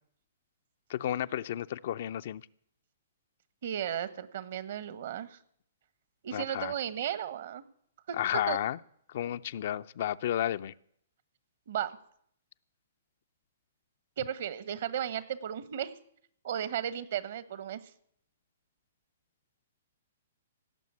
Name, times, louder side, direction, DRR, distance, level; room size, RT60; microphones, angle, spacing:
voice 1, 0.9-2.4 6.3-6.7 8.1-8.8 9.1-10.7, left 11 dB, 55° left, 13 dB, 0.5 m, -32 dB
voice 2, 3.6-5.4 6.2-7.6 8.1-8.2 8.5-8.6 11.7-12.0 14.2-15.9 16.4-17.8, right 10 dB, 60° right, 14 dB, 1.3 m, -35 dB
17.0 x 7.3 x 9.7 m, 0.68 s
hypercardioid pair, 120°, 0 cm